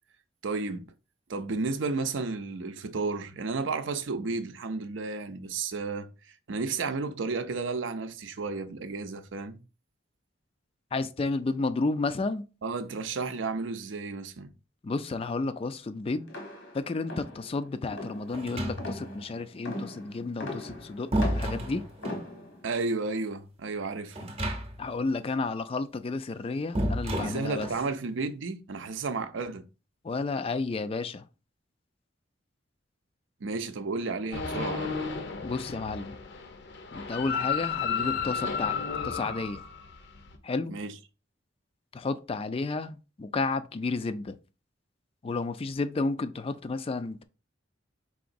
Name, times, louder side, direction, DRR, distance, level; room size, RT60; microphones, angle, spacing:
voice 1, 0.4-0.9 1.3-9.6 12.6-14.5 22.6-24.3 27.2-29.6 33.4-34.9 40.7-40.9, right 4 dB, 85° right, 0.6 m, -32 dB
voice 2, 10.9-12.4 14.8-16.3 16.7-21.8 24.8-27.7 30.0-31.2 35.4-36.2 36.9-38.8 39.0-39.6 40.4-40.8 41.9-44.4 45.2-47.2, left 3 dB, 30° left, 0.3 m, -31 dB
sound 1, 16.3-22.8, left 1 dB, 85° left, 1.3 m, -40 dB
sound 2, 18.3-19.2 20.5-22.3 24.1-25.0 25.2-25.3 26.7-27.9, right 1 dB, 30° right, 0.8 m, -31 dB
sound 3, 34.3-40.4, left 6 dB, 65° left, 0.7 m, -33 dB
4.8 x 3.8 x 2.6 m
head